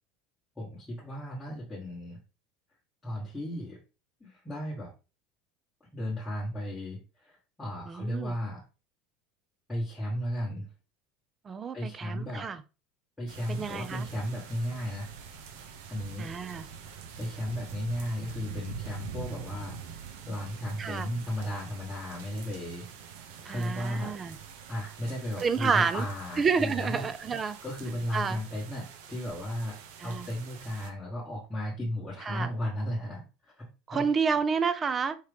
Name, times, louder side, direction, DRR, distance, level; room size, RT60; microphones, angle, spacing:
voice 1, 0.6-2.2 3.0-3.8 4.2-4.9 5.9-8.6 9.7-10.7 11.7-12.4 13.2-15.1 15.9-16.3 17.2-20.0 20.3-22.8 23.4-24.1 24.7-27.0 27.6-29.8 30.0-34.0, equal, 5° left, 1.2 m, -35 dB
voice 2, 7.9-8.3 11.5-12.6 13.5-14.1 16.2-16.7 20.8-21.1 23.5-24.4 25.4-26.1 26.4-27.6 28.1-28.4 30.0-30.3 32.3-32.5 33.9-35.2, right 5 dB, 20° right, 0.3 m, -29 dB
sound 1, 13.3-30.9, right 7 dB, 80° right, 0.7 m, -45 dB
4.7 x 2.9 x 3.3 m
cardioid pair, 175°, 0 cm